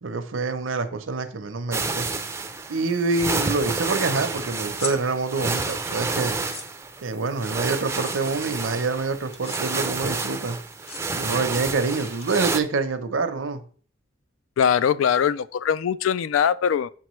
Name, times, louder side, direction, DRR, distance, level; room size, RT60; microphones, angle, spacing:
voice 1, 0.0-2.1 2.7-6.4 7.0-10.6 11.1-13.6, right 4 dB, 75° right, 0.8 m, -26 dB
sound 1, 1.7-12.6, right 3 dB, 15° right, 0.4 m, -30 dB
sound 2, 4.7-4.9 6.3-6.7 7.9-8.1 9.3-9.6 10.7-11.0 12.2-12.8, left 3 dB, 30° left, 0.7 m, -36 dB
voice 2, 14.6-16.9, left 8 dB, 85° left, 0.3 m, -21 dB
7.3 x 4.5 x 3.1 m
head